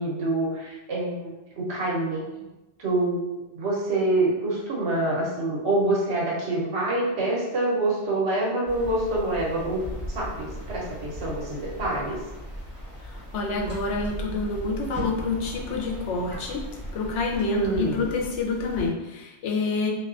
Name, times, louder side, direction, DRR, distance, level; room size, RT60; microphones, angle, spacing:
voice 1, 0.0-2.3 2.8-3.2 3.5-9.8 10.1-12.2 17.5-18.1, right 2 dB, 70° right, -4 dB, 1.0 m, -26 dB
sound 1, 8.7-18.9, equal, 15° right, 1.3 m, -38 dB
voice 2, 13.0-16.6 16.9-19.9, left 3 dB, 90° left, -1 dB, 0.9 m, -28 dB
2.5 x 2.3 x 2.4 m, 1.0 s
omnidirectional pair, 1.2 m